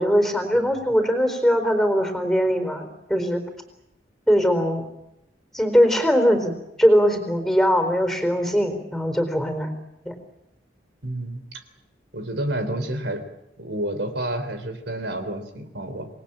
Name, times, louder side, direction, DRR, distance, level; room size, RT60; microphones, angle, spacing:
voice 1, 0.0-3.4 4.3-4.8 5.5-9.7 10.1-10.2, equal, 5° left, 7 dB, 4.2 m, -21 dB
voice 2, 0.5-0.9 11.0-11.4 12.1-13.2 13.6-16.1, right 1 dB, 70° right, 8 dB, 3.5 m, -29 dB
27.5 x 20.0 x 8.9 m, 0.85 s
head